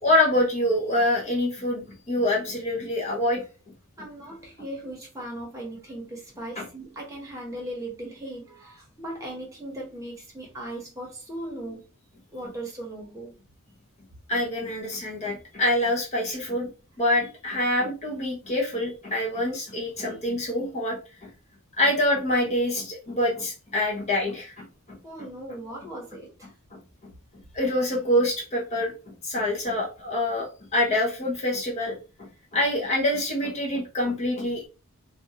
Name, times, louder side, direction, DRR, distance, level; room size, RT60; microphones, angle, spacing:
voice 1, 0.0-3.4 6.6-6.7 14.3-16.7 17.0-21.3 21.8-25.0 26.7-27.1 27.5-34.7, left 1 dB, 30° left, 0.6 m, -26 dB
voice 2, 4.0-11.8 12.3-13.3 25.0-26.5, right 1 dB, 15° right, 0.9 m, -38 dB
2.6 x 2.2 x 2.8 m
head